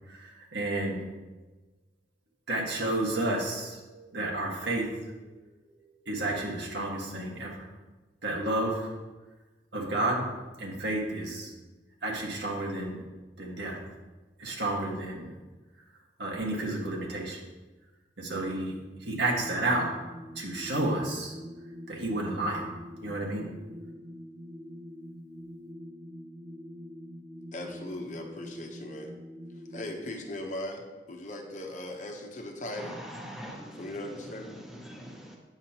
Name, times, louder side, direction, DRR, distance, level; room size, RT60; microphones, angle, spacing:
voice 1, 0.1-1.0 2.5-5.1 6.0-7.7 8.2-8.9 9.7-10.3 10.6-11.5 12.0-13.0 13.4-13.8 14.4-15.3 16.2-17.4 18.2-19.9 20.3-21.3 21.9-22.7 23.0-23.4, right 1 dB, 80° right, -1 dB, 1.7 m, -31 dB
sound 1, 19.4-30.1, equal, 25° right, 0.8 m, -45 dB
voice 2, 27.5-29.1 29.7-33.0 33.8-34.6, left 1 dB, 45° left, 3 dB, 0.9 m, -38 dB
voice 3, 32.7-35.4, equal, ahead, -2 dB, 1.2 m, -43 dB
8.8 x 7.1 x 2.9 m, 1.2 s
head